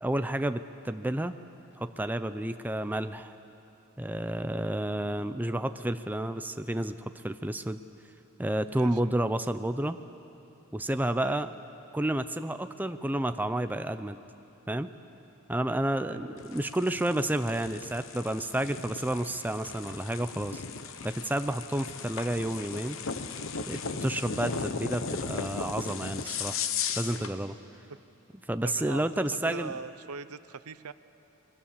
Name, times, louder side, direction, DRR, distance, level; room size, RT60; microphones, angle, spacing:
voice 1, 0.0-1.3 1.8-3.3 4.0-7.8 8.4-10.0 10.7-11.5 11.9-14.2 14.7-14.9 15.5-20.6 21.0-23.0 23.7-26.6 27.0-27.6 28.5-29.7, right 1 dB, 10° right, 9 dB, 0.5 m, -30 dB
voice 2, 8.7-9.2 11.2-11.4 16.1-16.4 27.9-28.0 28.6-30.9, right 4 dB, 80° right, 14 dB, 0.7 m, -41 dB
sound 1, 16.4-27.4, left 5 dB, 60° left, 1.0 m, -37 dB
26.5 x 22.5 x 7.3 m, 3.0 s
head